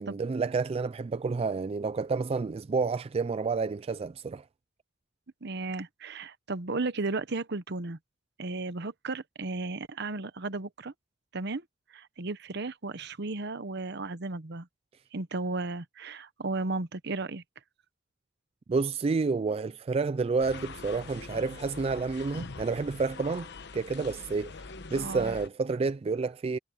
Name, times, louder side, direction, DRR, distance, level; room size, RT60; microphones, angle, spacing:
voice 1, 0.0-4.4 18.7-24.5 24.9-26.6, right 4 dB, 30° right, 0.3 m, -29 dB
voice 2, 5.4-8.0 8.4-10.9 11.3-11.6 11.9-14.7 15.1-17.4 25.0-25.3, right 3 dB, 60° right, 1.0 m, -34 dB
sound 1, 20.4-25.5, left 4 dB, 60° left, 1.0 m, -43 dB
head